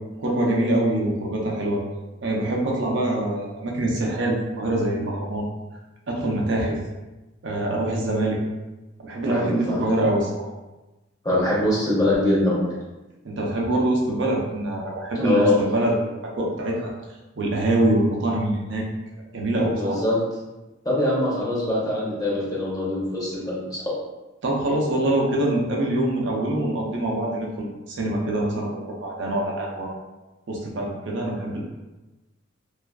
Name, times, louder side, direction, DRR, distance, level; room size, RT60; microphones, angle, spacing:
voice 1, 0.2-1.8 2.2-5.5 6.1-6.8 7.4-8.4 9.0-10.5 13.2-16.1 16.4-16.9 17.4-18.9 19.3-20.0 24.4-30.0 30.5-31.6, right 1 dB, 65° right, -2 dB, 0.5 m, -24 dB
voice 2, 9.3-9.9 11.2-12.7 15.2-15.6 19.7-20.2 20.8-23.9, left 1 dB, 20° left, -6 dB, 0.6 m, -23 dB
2.4 x 2.3 x 2.2 m, 1.1 s
head